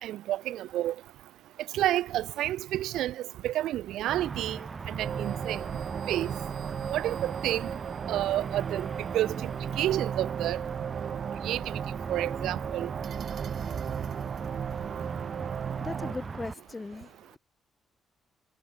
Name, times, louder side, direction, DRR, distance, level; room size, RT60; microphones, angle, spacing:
voice 1, 0.0-0.9 1.7-3.1 3.4-4.6 4.8-5.6 6.1-6.3 6.9-7.7 8.1-8.9 9.1-9.3 9.8-10.6 11.4-11.6 12.1-12.9, right 14 dB, 85° right, 1.5 m, -29 dB
sound 1, 4.1-16.5, right 4 dB, 35° right, 2.5 m, -40 dB
sound 2, 5.0-16.1, right 8 dB, 55° right, 1.6 m, -35 dB
voice 2, 15.8-17.4, left 3 dB, 20° left, 6.1 m, -39 dB
cardioid pair, 90°, 0 cm